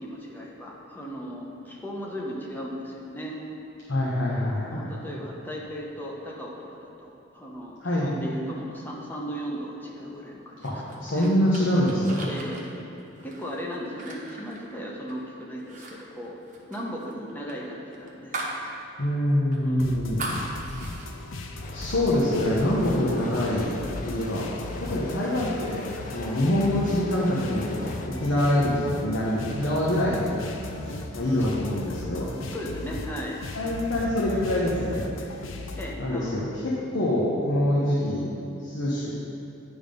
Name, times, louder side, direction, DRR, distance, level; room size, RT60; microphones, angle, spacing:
voice 1, 0.0-3.4 4.3-11.3 12.3-12.7 13.2-16.4 16.7-18.4 18.7-18.8 19.6-19.8 31.4-31.5 32.5-33.4 35.8-36.4, equal, 10° left, -3 dB, 0.8 m, -36 dB
voice 2, 3.9-4.9 7.8-8.3 10.6-10.7 11.0-12.3 19.0-20.4 21.7-23.7 24.0-24.5 24.8-30.4 30.8-32.3 33.5-35.1 36.0-38.2 38.6-39.1, left 1 dB, 65° left, -6 dB, 0.9 m, -25 dB
sound 1, 10.6-15.2 15.6-18.6 19.0-19.1 19.5-21.1, right 2 dB, 40° right, 0.9 m, -38 dB
sound 2, 19.8-35.9, left 2 dB, 85° left, 0.6 m, -37 dB
sound 3, 21.6-28.1, left 3 dB, 40° left, 0.4 m, -43 dB
9.5 x 3.5 x 5.2 m, 2.8 s
head